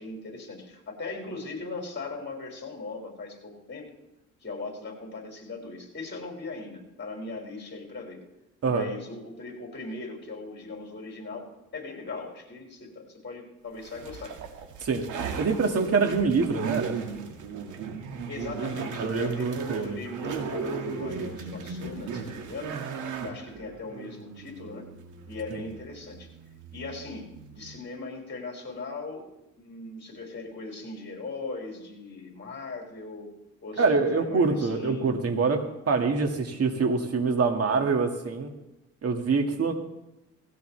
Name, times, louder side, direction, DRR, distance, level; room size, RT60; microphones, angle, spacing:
voice 1, 0.0-3.9 4.4-8.2 8.6-14.4 18.3-22.8 23.2-24.9 25.3-26.3 26.7-29.3 29.6-33.3 33.6-33.8 34.1-35.1, left 3 dB, 40° left, 0 dB, 5.8 m, -39 dB
sound 1, 13.8-27.8, right 5 dB, 80° right, 2.1 m, -37 dB
voice 2, 14.8-17.0 19.0-20.0 25.5-25.6 33.8-38.5 39.0-39.7, right 4 dB, 50° right, 4 dB, 2.2 m, -25 dB
18.5 x 16.5 x 3.4 m, 0.93 s
cardioid pair, 90°, 30 cm